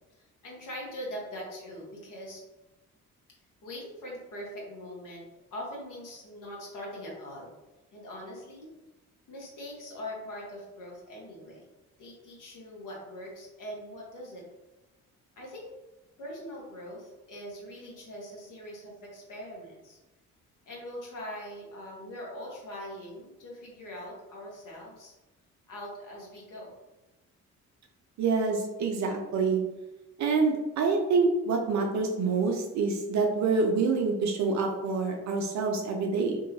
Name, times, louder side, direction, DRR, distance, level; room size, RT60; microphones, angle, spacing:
voice 1, 0.1-2.4 3.6-7.5 7.9-8.7 9.3-11.7 12.0-14.5 15.4-15.7 16.2-20.0 20.7-25.1 25.7-26.7, equal, 45° left, -3 dB, 1.1 m, -42 dB
voice 2, 28.2-29.6 30.2-36.4, right 4 dB, 45° right, 2 dB, 0.5 m, -26 dB
2.7 x 2.5 x 2.7 m, 1.1 s
figure-of-eight pair, 40°, 42 cm